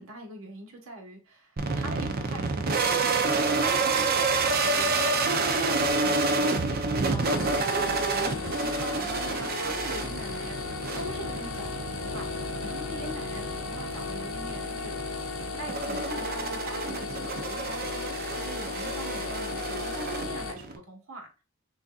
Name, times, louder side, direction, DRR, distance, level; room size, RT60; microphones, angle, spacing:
voice 1, 0.0-3.2 3.6-14.9 15.6-21.3, right 2 dB, 85° right, 1.4 m, -42 dB
sound 1, 1.6-20.8, right 3 dB, 45° right, 0.6 m, -29 dB
sound 2, 7.2-20.5, left 4 dB, 85° left, 0.7 m, -35 dB
6.2 x 2.7 x 2.4 m
head